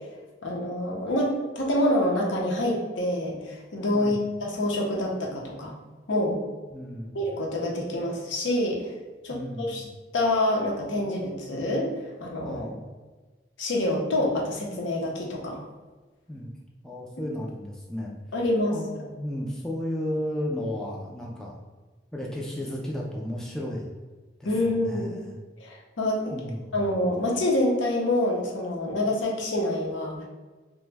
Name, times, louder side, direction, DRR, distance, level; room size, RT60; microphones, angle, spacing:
voice 1, 0.4-5.7 6.1-6.4 7.1-8.9 9.2-9.8 10.1-11.9 12.2-12.7 13.6-15.6 18.3-18.7 24.4-25.1 25.6-26.3 26.7-30.3, left 1 dB, 80° left, -2 dB, 0.7 m, -26 dB
voice 2, 6.7-7.2 9.3-9.8 12.4-12.8 16.3-16.5 16.8-18.1 18.7-21.6 22.1-23.9 24.4-25.3 26.3-27.1, left 1 dB, 5° left, -3 dB, 0.3 m, -34 dB
2.9 x 2.2 x 3.3 m, 1.3 s
head